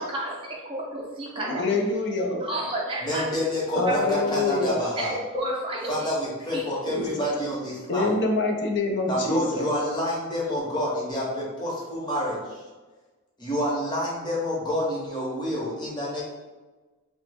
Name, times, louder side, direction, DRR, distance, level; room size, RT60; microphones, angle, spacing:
voice 1, 0.0-1.6 2.4-3.3 3.9-4.0 5.0-5.9 6.5-6.6, right 1 dB, 25° right, -3 dB, 0.5 m, -31 dB
voice 2, 1.5-2.4 3.8-4.8 6.9-7.3 7.9-9.7, left 2 dB, 60° left, 2 dB, 0.5 m, -25 dB
voice 3, 3.0-5.1 5.9-8.1 9.1-12.6 13.4-16.2, left 1 dB, 20° left, -6 dB, 0.9 m, -28 dB
2.9 x 2.0 x 3.4 m, 1.2 s
head